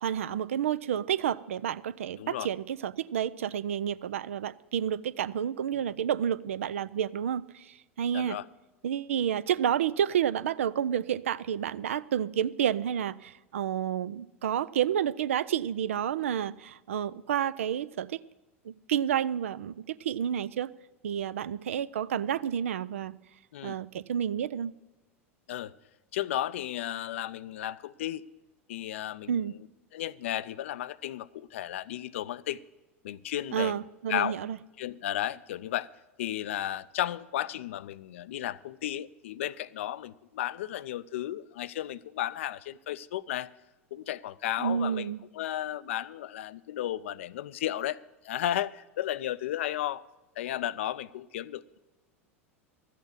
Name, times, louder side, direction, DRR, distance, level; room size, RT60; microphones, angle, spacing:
voice 1, 0.0-8.4 8.8-18.2 18.6-20.7 21.0-23.1 23.6-24.7 29.3-29.5 33.5-34.6 44.6-45.2, right 9 dB, 70° right, 17 dB, 0.4 m, -30 dB
voice 2, 2.2-2.5 8.1-8.5 23.5-23.8 25.5-25.7 26.1-28.2 28.7-29.4 29.9-32.6 33.0-33.7 34.1-34.4 34.8-35.9 36.2-43.5 43.9-45.1 45.3-48.0 48.2-50.0 50.4-51.8, left 12 dB, 65° left, 18 dB, 0.4 m, -34 dB
13.0 x 8.3 x 7.1 m, 1.1 s
figure-of-eight pair, 85°, 7 cm